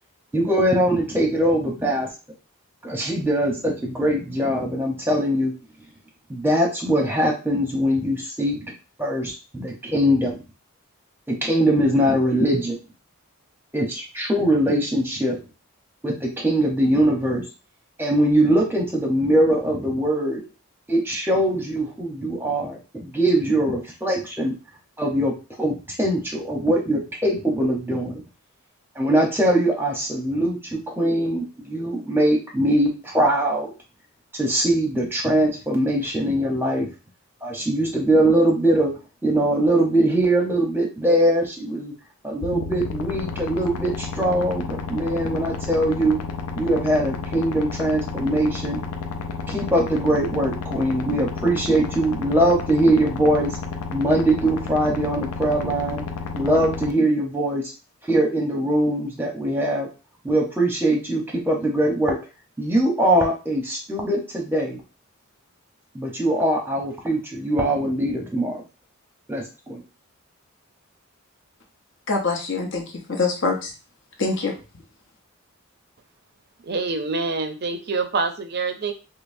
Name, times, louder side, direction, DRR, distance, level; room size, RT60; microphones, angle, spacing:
voice 1, 0.3-2.1 2.8-5.5 6.3-8.6 9.0-10.4 11.3-12.8 13.7-15.4 16.0-17.4 18.0-20.4 20.9-24.5 25.0-25.3 25.6-28.2 29.0-33.7 34.3-36.9 37.4-38.9 39.2-41.9 42.2-46.2 46.6-48.8 49.5-53.6 53.9-56.0 56.4-57.6 58.1-59.9 60.2-62.2 62.6-64.8 65.9-68.6 69.3-69.8, right 1 dB, 10° right, 0 dB, 0.8 m, -22 dB
sound 1, 42.4-56.9, left 4 dB, 90° left, 0.5 m, -31 dB
voice 2, 72.1-73.7 74.2-74.5, left 3 dB, 55° left, 1 dB, 0.9 m, -24 dB
voice 3, 76.6-78.9, right 4 dB, 45° right, 6 dB, 0.5 m, -26 dB
5.2 x 2.1 x 2.6 m, 0.31 s
head